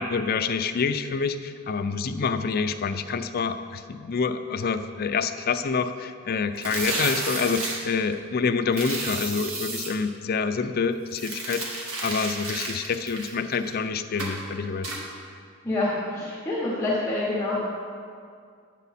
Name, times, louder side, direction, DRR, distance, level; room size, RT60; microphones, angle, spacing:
voice 1, 0.0-15.0, left 5 dB, 50° left, 9 dB, 0.4 m, -27 dB
sound 1, 6.6-7.8 8.7-9.9 11.1-13.8 14.2-14.4 14.8-15.0, right 2 dB, 80° right, 1.7 m, -31 dB
voice 2, 15.6-17.6, left 2 dB, 15° left, -6 dB, 1.2 m, -27 dB
9.0 x 8.2 x 4.2 m, 2.2 s
head